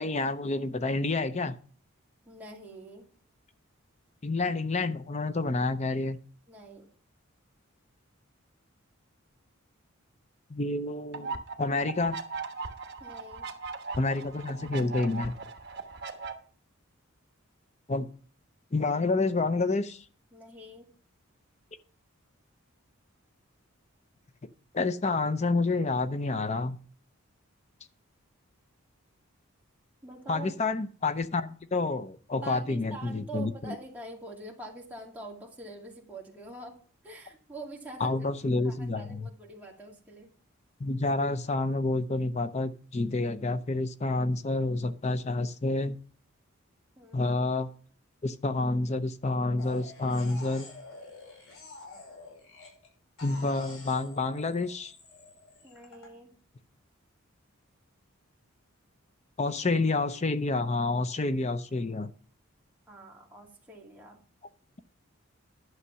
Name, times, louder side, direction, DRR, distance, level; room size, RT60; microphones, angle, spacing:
voice 1, 0.0-1.6 4.2-6.2 10.5-12.2 14.0-15.3 17.9-18.1 18.7-20.0 24.7-26.8 30.3-33.8 38.0-39.2 40.8-46.0 47.1-47.7 48.2-50.7 53.2-54.9 59.4-62.1, left 3 dB, 30° left, 12 dB, 0.6 m, -29 dB
voice 2, 2.2-3.0 6.5-6.9 13.0-13.5 20.3-20.9 30.0-30.6 32.4-36.7 37.0-38.1 38.6-40.3 47.0-47.3 55.6-56.3 62.9-64.2, right 2 dB, 10° right, -3 dB, 2.2 m, -45 dB
sound 1, 11.1-16.3, right 4 dB, 50° right, 1.3 m, -39 dB
sound 2, 49.6-52.9 53.2-56.1, left 3 dB, 85° left, 5.4 m, -48 dB
11.0 x 6.5 x 5.8 m, 0.42 s
head